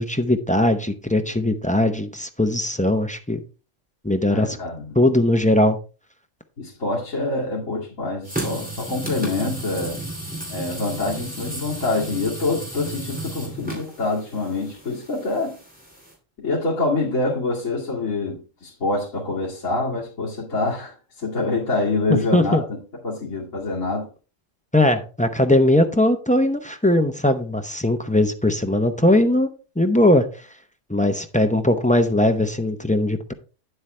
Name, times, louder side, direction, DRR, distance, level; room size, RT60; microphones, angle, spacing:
voice 1, 0.0-3.4 4.0-4.6 4.9-5.8 22.1-22.6 24.7-29.5 29.8-30.3 30.9-33.3, left 1 dB, 10° left, 0.4 m, -19 dB
voice 2, 4.3-4.9 6.6-10.0 10.5-15.5 16.4-22.6 23.0-24.1, left 2 dB, 80° left, 2.6 m, -26 dB
sound 1, 8.2-16.1, right 2 dB, 5° right, 2.6 m, -33 dB
9.1 x 7.9 x 3.3 m
omnidirectional pair, 1.3 m